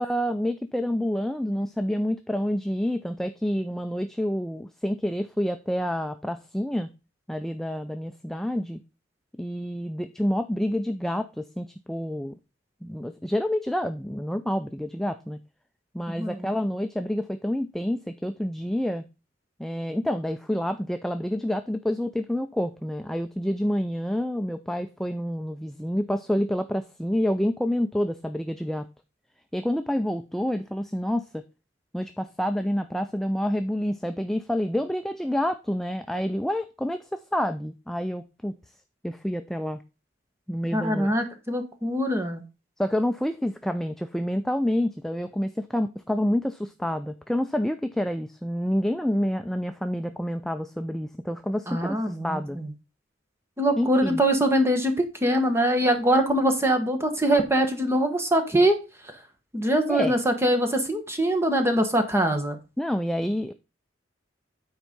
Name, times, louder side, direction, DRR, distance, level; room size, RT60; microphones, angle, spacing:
voice 1, 0.0-6.9 7.3-8.8 9.4-12.4 12.8-15.4 15.9-19.0 19.6-28.9 29.5-31.4 31.9-38.5 39.0-39.8 40.5-41.1 42.8-52.6 53.8-54.2 59.9-60.2 62.8-63.5, equal, ahead, 8 dB, 0.4 m, -28 dB
voice 2, 16.1-16.5 40.7-42.4 51.7-52.7 53.6-58.8 59.5-62.6, right 1 dB, 15° right, 6 dB, 1.4 m, -23 dB
8.8 x 4.6 x 5.3 m, 0.29 s
head